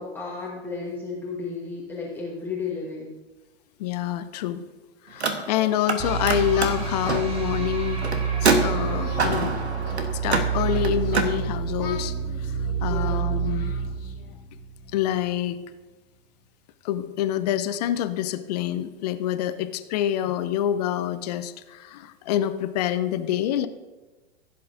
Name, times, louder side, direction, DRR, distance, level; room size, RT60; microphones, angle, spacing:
voice 1, 0.0-3.1 5.1-5.2 12.9-13.5, left 4 dB, 5° left, -5 dB, 1.2 m, -33 dB
voice 2, 3.8-4.6 5.0-8.1 8.4-9.5 10.1-13.7 14.9-15.6 16.8-23.7, left 11 dB, 40° left, 12 dB, 0.6 m, -27 dB
Car, 5.1-6.0 6.2-11.3, right 4 dB, 75° right, 1.2 m, -26 dB
Singing, 5.5-8.5 8.9-11.4 11.8-14.4, left 7 dB, 60° left, 1.6 m, -43 dB
sound 1, 6.0-15.1, right 6 dB, 15° right, 1.3 m, -28 dB
15.5 x 7.6 x 2.6 m, 1.2 s
figure-of-eight pair, 105°, 33 cm